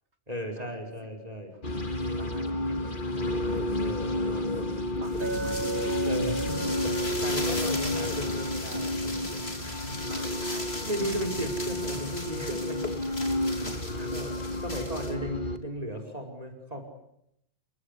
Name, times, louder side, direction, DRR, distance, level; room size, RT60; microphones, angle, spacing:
voice 1, 0.3-1.5 3.7-4.3 6.1-10.0 10.8-12.9 13.6-14.3 14.6-16.8, equal, 35° right, 5 dB, 5.0 m, -36 dB
sound 1, 1.6-15.6, left 1 dB, 50° left, 2.1 m, -31 dB
voice 2, 1.9-3.8 4.2-4.5 5.0-6.3 10.1-10.9 13.1-13.2 13.5-14.1, right 2 dB, 75° right, 6 dB, 3.8 m, -50 dB
sound 2, 5.0-15.1, left 2 dB, 65° left, 4.2 m, -39 dB
Chink clink, 5.2-9.6, right 2 dB, 55° right, 1.5 m, -37 dB
29.5 x 24.0 x 8.3 m, 0.80 s
omnidirectional pair, 1.1 m